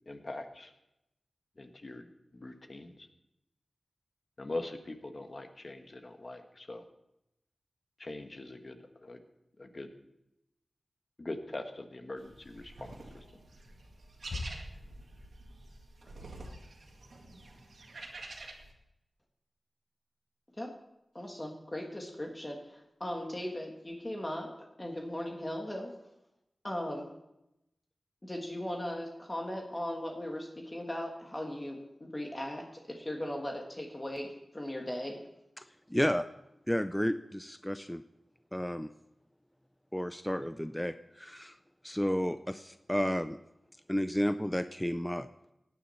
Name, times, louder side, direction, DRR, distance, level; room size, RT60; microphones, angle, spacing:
voice 1, 0.0-0.7 1.6-3.1 4.4-6.8 8.0-9.2 9.6-9.9 11.2-13.4, left 2 dB, 40° left, 6 dB, 1.4 m, -42 dB
sound 1, 12.2-18.7, right 2 dB, 80° right, 2.0 m, -48 dB
sound 2, 14.3-15.7, left 2 dB, 90° left, 4.4 m, -42 dB
voice 2, 21.1-24.5 24.8-25.9 26.6-27.1 28.2-35.2, left 1 dB, 20° left, 1 dB, 1.6 m, -38 dB
voice 3, 35.9-36.2 36.7-38.0 38.5-38.9 39.9-41.6 41.8-43.4 43.9-45.3, equal, 5° left, 11 dB, 0.4 m, -32 dB
17.0 x 9.6 x 4.3 m, 0.87 s
wide cardioid pair, 95°, 0 cm